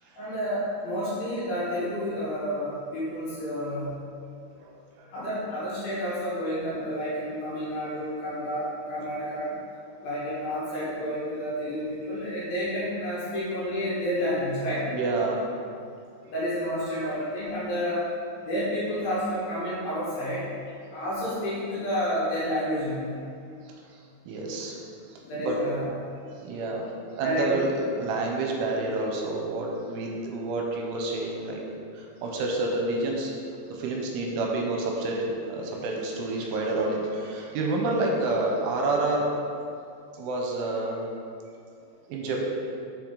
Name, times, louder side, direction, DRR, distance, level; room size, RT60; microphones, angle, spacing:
voice 1, 0.1-3.9 5.1-9.5 10.0-14.9 16.3-18.1 18.4-20.4 20.9-23.2 25.2-25.8 27.2-27.6, equal, 65° left, -9 dB, 2.8 m, -30 dB
voice 2, 4.6-5.2 14.9-15.5 17.0-17.1 23.6-24.0 24.3-24.8 25.1-25.6 26.4-31.6 31.9-33.4 33.7-39.4 40.1-41.1 42.1-42.5, right 2 dB, 85° right, 0 dB, 3.1 m, -29 dB
6.8 x 5.9 x 3.9 m, 2.4 s
omnidirectional pair, 5.6 m